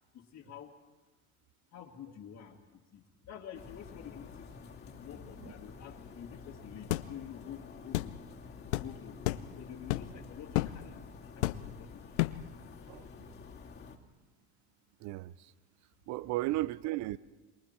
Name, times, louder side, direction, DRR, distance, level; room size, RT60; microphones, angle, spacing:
voice 1, 0.1-0.8 1.7-2.6 2.9-4.5 4.9-8.2 8.8-9.2 9.6-11.0 11.3-12.0, left 9 dB, 50° left, -4 dB, 2.3 m, -48 dB
sound 1, 3.5-14.0, left 5 dB, 30° left, 2.6 m, -50 dB
sound 2, 6.9-7.1 7.9-8.1 8.7-8.9 9.2-9.5 9.9-10.2 10.5-10.8 11.4-11.8 12.2-12.5, left 18 dB, 85° left, 0.7 m, -31 dB
voice 2, 15.0-15.5 16.1-17.2, right 17 dB, 60° right, 19 dB, 0.6 m, -35 dB
27.5 x 23.0 x 4.5 m, 1.2 s
supercardioid pair, 90°, 32 cm